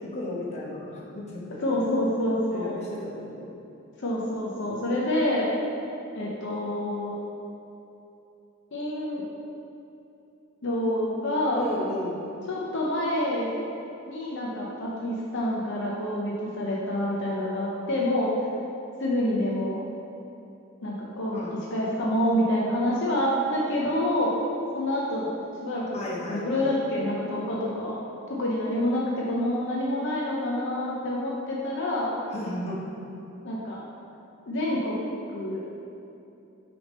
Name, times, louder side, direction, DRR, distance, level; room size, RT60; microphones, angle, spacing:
voice 1, 0.0-1.6 2.4-3.4 11.5-12.1 21.3-21.6 25.9-26.7 32.3-32.8, left 1 dB, 30° left, -5 dB, 1.0 m, -34 dB
voice 2, 1.6-2.8 4.0-5.5 6.1-7.2 8.7-9.2 10.6-11.6 12.5-13.5 14.1-18.3 19.0-19.8 20.8-21.4 21.7-24.3 24.7-25.3 25.6-28.0 28.4-32.1 33.4-33.8 34.5-35.0 35.3-35.6, left 1 dB, 60° left, -4 dB, 0.7 m, -27 dB
6.0 x 3.5 x 5.3 m, 2.8 s
head